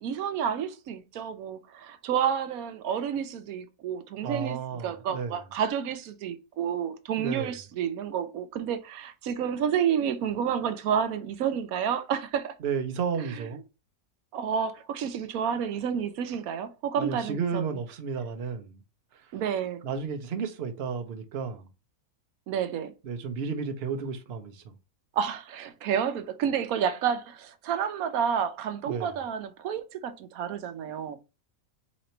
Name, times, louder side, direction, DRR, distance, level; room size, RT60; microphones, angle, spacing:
voice 1, 0.0-12.5 13.2-13.5 14.3-17.7 19.3-19.8 22.5-22.9 25.1-31.2, right 8 dB, 85° right, 1.1 m, -30 dB
voice 2, 4.2-5.4 7.2-7.5 12.6-13.6 17.0-18.8 19.8-21.7 23.0-24.6 28.9-29.1, right 6 dB, 50° right, 0.9 m, -32 dB
4.2 x 2.8 x 4.3 m
omnidirectional pair, 1.5 m